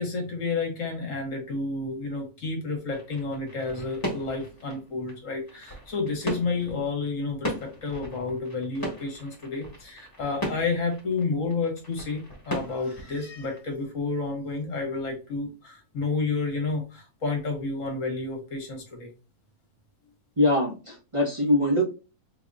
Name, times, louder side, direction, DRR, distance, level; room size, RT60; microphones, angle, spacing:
voice 1, 0.0-19.1, left 3 dB, 60° left, 2 dB, 1.5 m, -30 dB
sound 1, 2.9-13.6, equal, 15° left, 1.2 m, -38 dB
voice 2, 20.4-21.8, left 1 dB, 25° right, -4 dB, 0.9 m, -23 dB
4.0 x 2.8 x 2.5 m, 0.31 s
omnidirectional pair, 1.6 m